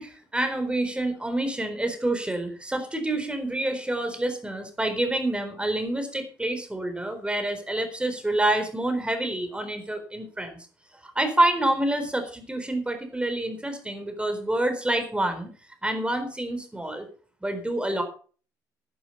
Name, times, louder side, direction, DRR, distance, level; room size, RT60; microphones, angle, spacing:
voice 1, 0.0-10.6 11.0-15.5 15.8-17.1 17.4-18.0, right 1 dB, 10° right, 7 dB, 4.1 m, -27 dB
11.0 x 10.5 x 5.6 m, 0.41 s
hypercardioid pair, 55°, 9 cm